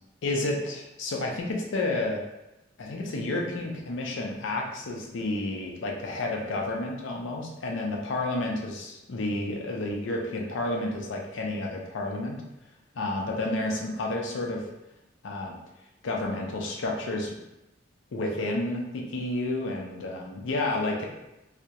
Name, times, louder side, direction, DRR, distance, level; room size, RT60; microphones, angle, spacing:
voice 1, 0.2-2.2 2.8-12.4 12.9-14.6 15.2-15.5 16.0-17.3 18.1-21.0, left 2 dB, 70° left, 0 dB, 0.5 m, -30 dB
2.3 x 2.0 x 2.7 m, 0.93 s
head